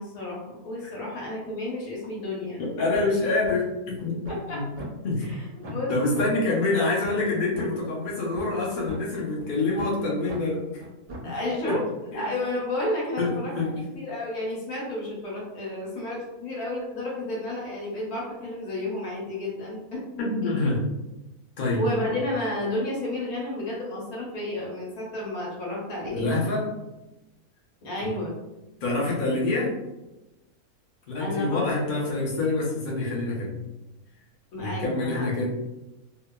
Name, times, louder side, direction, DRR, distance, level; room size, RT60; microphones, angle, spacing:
voice 1, 0.0-2.6 4.3-4.6 5.2-6.0 11.2-11.8 12.1-13.5 13.9-20.0 20.4-20.7 21.8-26.3 27.8-28.4 31.2-31.7 34.5-35.2, left 1 dB, 75° left, -4 dB, 1.3 m, -31 dB
sound 1, 2.6-2.7 2.9-3.2 3.4-3.6 4.0-4.5 4.8-4.9 5.3-5.4 5.6-5.8 6.1-6.3 6.7-6.8 7.0-7.2 7.5-7.7 8.1-9.0 9.4-9.5 9.8-9.9 10.3-10.4 10.8-11.3, right 1 dB, 50° right, 0.6 m, -39 dB
voice 2, 2.8-4.2 4.5-4.6 5.0-5.2 5.6-10.8 11.6-11.8 12.1-12.2 13.2-13.7 20.2-20.8 21.6-21.8 26.1-26.7 28.8-29.7 31.1-33.5 34.6-35.5, left 2 dB, 50° left, -4 dB, 0.6 m, -26 dB
2.8 x 2.2 x 2.2 m, 1.0 s
omnidirectional pair, 1.6 m